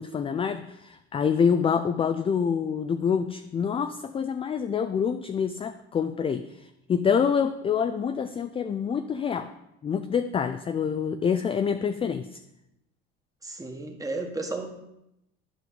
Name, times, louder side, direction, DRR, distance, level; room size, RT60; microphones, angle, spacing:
voice 1, 0.0-6.5 6.9-9.5 9.8-12.3, left 7 dB, 20° left, 9 dB, 0.3 m, -26 dB
voice 2, 13.4-14.7, right 3 dB, 10° right, 3 dB, 1.3 m, -33 dB
11.0 x 5.2 x 3.9 m, 0.84 s
supercardioid pair, 95°, 30 cm